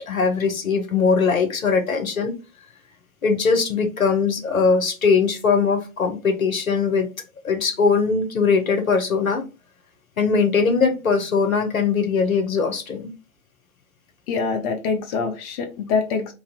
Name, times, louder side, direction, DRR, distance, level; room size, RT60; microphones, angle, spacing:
voice 1, 0.1-2.3 3.2-7.1 7.4-9.4 10.2-13.1, left 5 dB, 80° left, 1.0 m, -20 dB
voice 2, 14.3-16.3, left 5 dB, 30° left, 0.6 m, -25 dB
2.9 x 2.7 x 4.1 m
figure-of-eight pair, 105°, 41 cm